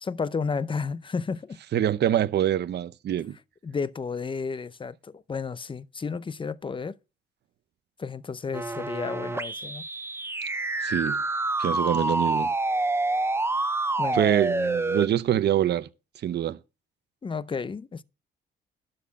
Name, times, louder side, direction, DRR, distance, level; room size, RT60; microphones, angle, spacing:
voice 1, 0.0-1.6 3.6-6.9 8.0-9.8 14.0-14.3 17.2-18.0, left 5 dB, 25° left, 0.6 m, -32 dB
voice 2, 1.7-3.4 10.8-11.2 11.6-12.5 14.1-15.9 16.2-16.6, right 11 dB, 60° right, 0.7 m, -25 dB
sound 1, 8.5-15.1, right 2 dB, 10° right, 0.6 m, -27 dB
12.5 x 4.2 x 7.6 m
cardioid pair, 90°, 20 cm